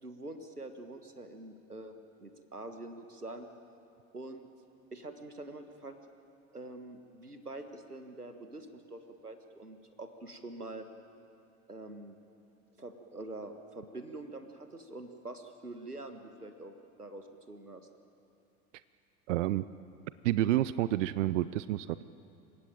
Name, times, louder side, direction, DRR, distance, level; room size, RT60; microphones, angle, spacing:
voice 1, 0.0-3.5 4.1-4.5 4.9-5.9 6.5-10.9 11.7-12.2 12.8-17.9, right 2 dB, 90° right, 7 dB, 1.6 m, -45 dB
voice 2, 19.3-19.7 20.2-22.0, right 14 dB, 55° right, 16 dB, 0.6 m, -29 dB
28.0 x 16.5 x 9.0 m, 2.7 s
figure-of-eight pair, 80°, 44 cm